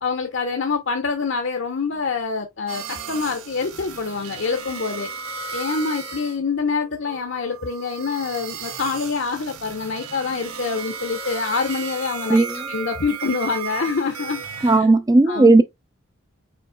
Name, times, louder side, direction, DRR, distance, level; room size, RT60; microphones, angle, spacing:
voice 1, 0.0-5.1 5.5-14.9 15.3-15.6, left 4 dB, 55° left, 0.7 m, -26 dB
sound 1, 2.7-6.4 6.8-14.8, right 6 dB, 85° right, 1.0 m, -35 dB
voice 2, 14.6-15.6, right 2 dB, 15° right, 0.4 m, -14 dB
5.2 x 4.4 x 2.2 m
head